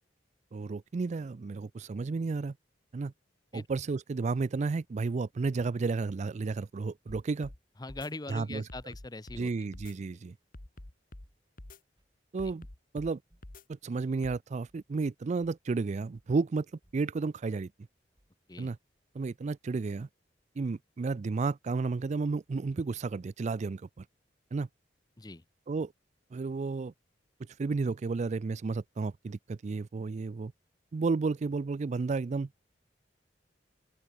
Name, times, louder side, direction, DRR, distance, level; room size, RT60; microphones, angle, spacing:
voice 1, 0.5-2.6 2.9-3.1 3.5-7.5 8.3-8.6 9.4-10.3 12.3-12.7 12.9-13.2 13.7-16.7 16.9-17.7 18.6-18.8 19.1-20.1 20.6-24.0 24.5-24.7 25.7-25.9 26.3-26.9 27.6-30.5 30.9-32.5, right 4 dB, 40° right, 0.4 m, -32 dB
sound 1, 7.1-7.6 7.9-8.1 8.7-9.4 9.7-9.9 10.5-11.3 11.6-11.8 12.4-13.1 13.4-13.6 14.2-14.4, left 1 dB, 50° left, 1.7 m, -47 dB
voice 2, 7.8-9.5 9.9-10.2 18.5-18.7 25.2-25.4, left 2 dB, 20° left, 0.8 m, -42 dB
sound 2, 9.9-10.5 10.7-10.9 11.2-11.6 12.0-12.3 12.5-12.9 13.3-13.7 14.0-14.3 14.7-14.9 15.1-15.2 15.4-16.4 16.8-17.1 17.4-17.6 18.2-18.6 19.0-19.1, equal, 25° right, 3.9 m, -70 dB
open air
head